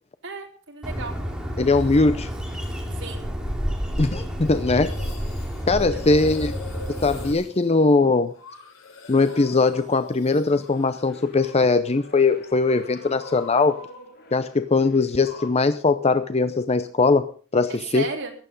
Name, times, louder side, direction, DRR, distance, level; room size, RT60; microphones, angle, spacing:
voice 1, 0.2-1.2 2.9-3.3 5.9-6.0 17.6-18.3, right 4 dB, 65° right, 2 dB, 3.5 m, -34 dB
Bird, 0.8-7.3, equal, 5° right, 2.5 m, -30 dB
voice 2, 1.6-2.3 4.0-4.9 5.7-6.5 7.0-8.3 9.1-13.8 14.3-18.1, left 3 dB, 30° left, 11 dB, 0.6 m, -20 dB
sound 1, 4.4-11.9 12.1-13.6, left 3 dB, 85° left, 4.9 m, -44 dB
sound 2, 9.3-10.2 10.5-15.5, left 2 dB, 55° left, 3.9 m, -45 dB
15.0 x 11.5 x 5.3 m, 0.40 s
head